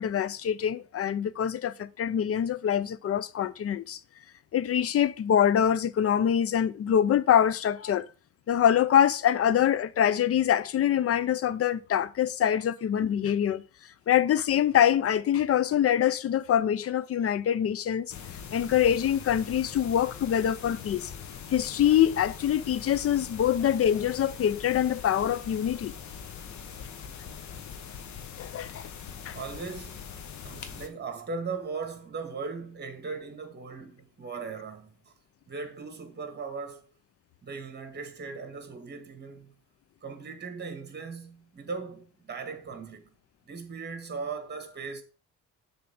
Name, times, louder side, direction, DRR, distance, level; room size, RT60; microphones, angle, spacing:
voice 1, 0.0-4.0 4.5-8.1 8.5-13.6 14.1-18.1 18.5-21.1 21.5-25.9 28.4-28.9 29.2-29.4, left 9 dB, 50° left, 0.6 m, -25 dB
sound 1, 18.1-30.9, left 7 dB, 70° left, 1.2 m, -42 dB
voice 2, 29.3-30.1 30.4-35.1 35.5-36.9 37.4-39.5 40.0-43.2 43.5-45.0, right 4 dB, 35° right, 2.0 m, -38 dB
7.0 x 3.8 x 6.0 m
cardioid pair, 90°, 30 cm